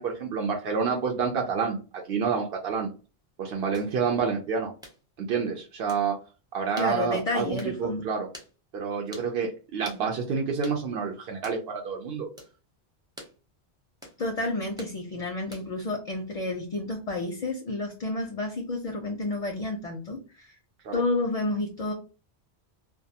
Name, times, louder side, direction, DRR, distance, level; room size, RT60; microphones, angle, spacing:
voice 1, 0.0-1.8 2.1-2.9 3.4-4.7 5.2-6.2 6.5-8.3 8.7-12.3 20.8-21.0, right 5 dB, 70° right, 0 dB, 0.8 m, -28 dB
sound 1, 3.7-3.9 4.8-5.0 5.9-6.1 6.8-7.0 7.6-7.8 8.3-8.5 9.1-9.3 9.8-10.0 10.6-10.8 11.4-11.6 12.4-12.5 13.2-13.4 14.0-14.2 14.8-15.0 15.5-15.8, equal, 5° right, 0.5 m, -45 dB
voice 2, 6.8-8.1 14.2-20.5 20.9-21.9, left 2 dB, 50° left, 3 dB, 0.5 m, -30 dB
2.3 x 2.2 x 2.7 m, 0.33 s
omnidirectional pair, 1.1 m